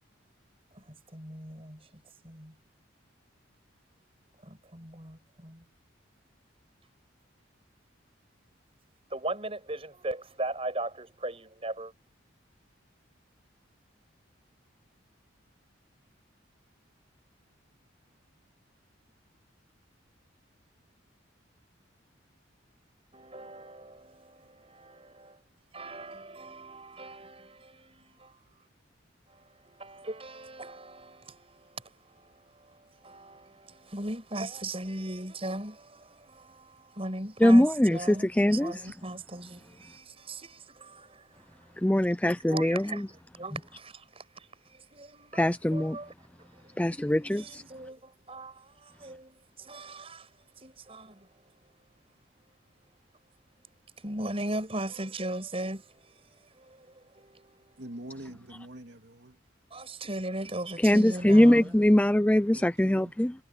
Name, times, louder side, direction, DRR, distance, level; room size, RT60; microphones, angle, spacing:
voice 1, 0.7-2.6 4.4-5.7 9.1-11.9 23.1-25.4 25.7-28.4 29.3-41.7 42.5-51.3 54.0-57.8 59.7-61.8, right 1 dB, 30° right, 7.1 m, -39 dB
voice 2, 37.4-38.7 41.8-43.1 45.3-46.0 46.8-47.6 60.8-63.3, left 1 dB, 5° left, 0.4 m, -22 dB
voice 3, 57.8-59.4 62.5-63.1, right 1 dB, 60° right, 2.5 m, -45 dB
head